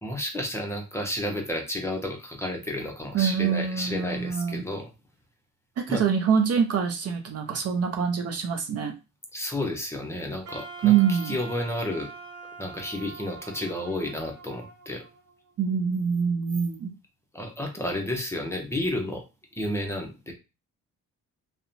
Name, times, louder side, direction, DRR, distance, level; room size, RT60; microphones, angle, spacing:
voice 1, 0.0-4.9 5.9-6.0 9.3-12.1 12.6-15.0 17.3-19.2 19.5-20.3, left 1 dB, 10° left, 1 dB, 0.7 m, -31 dB
voice 2, 3.1-4.7 5.8-8.9 10.8-11.4 15.6-16.9, right 7 dB, 55° right, 5 dB, 0.6 m, -25 dB
Wind instrument woodwind instrument, 10.4-15.5, right 4 dB, 85° right, 1.0 m, -44 dB
2.7 x 2.2 x 2.5 m, 0.27 s
cardioid pair, 90°, 30 cm